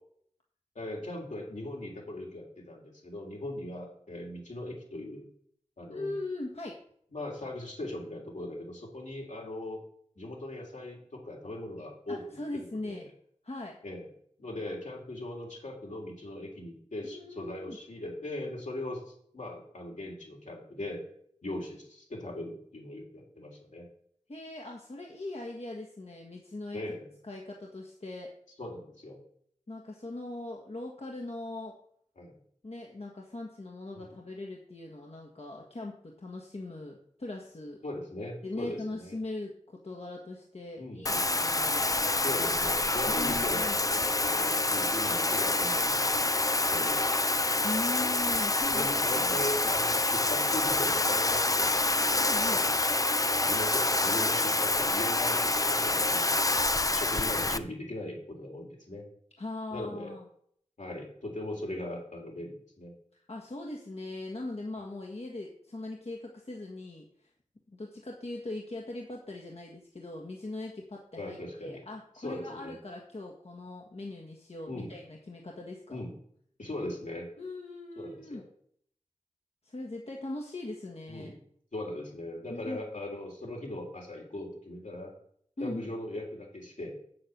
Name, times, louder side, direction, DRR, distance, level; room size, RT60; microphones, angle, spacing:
voice 1, 0.7-5.2 5.8-6.1 7.1-9.8 10.2-12.2 12.5-13.0 13.8-14.1 14.4-21.0 21.4-23.8 26.7-27.1 28.6-29.2 32.2-32.4 34.0-34.1 37.8-39.1 40.8-41.0 42.2-46.2 46.7-47.0 48.7-51.8 52.5-52.9 53.4-56.5 56.9-59.0 59.7-60.1 60.8-62.9 71.2-71.8 72.2-72.7 74.7-74.9 75.9-76.1 76.6-77.3 78.0-78.4 81.1-81.4 81.7-85.1 85.6-87.0, left 1 dB, 75° left, -1 dB, 3.4 m, -39 dB
voice 2, 5.9-6.8 12.1-13.1 13.4-13.8 17.0-17.8 24.3-26.8 27.2-28.3 29.7-31.7 32.6-37.8 38.4-42.0 43.1-43.8 47.6-49.4 52.2-52.6 59.4-60.3 63.1-67.3 67.7-76.0 77.4-78.5 79.6-81.3 82.5-82.8 85.6-85.9, left 2 dB, 55° left, -1 dB, 1.6 m, -40 dB
Bathtub (filling or washing), 41.0-57.6, left 2 dB, 25° left, 0.6 m, -27 dB
7.8 x 7.6 x 6.7 m, 0.65 s
cardioid pair, 40°, 13 cm